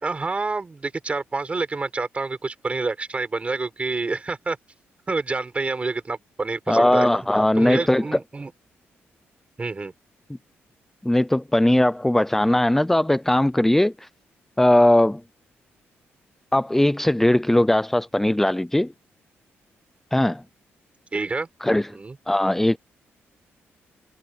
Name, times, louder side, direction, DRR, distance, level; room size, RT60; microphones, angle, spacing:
voice 1, 0.0-4.6 5.1-7.1 7.6-8.5 9.6-9.9 21.1-21.5 21.9-22.1, right 3 dB, 30° right, 4.7 m, -27 dB
voice 2, 6.7-8.2 11.0-14.1 14.6-15.2 16.5-18.9 20.1-20.4 21.6-22.0 22.3-22.8, left 1 dB, 5° left, 0.6 m, -19 dB
cardioid pair, 90°, 5 cm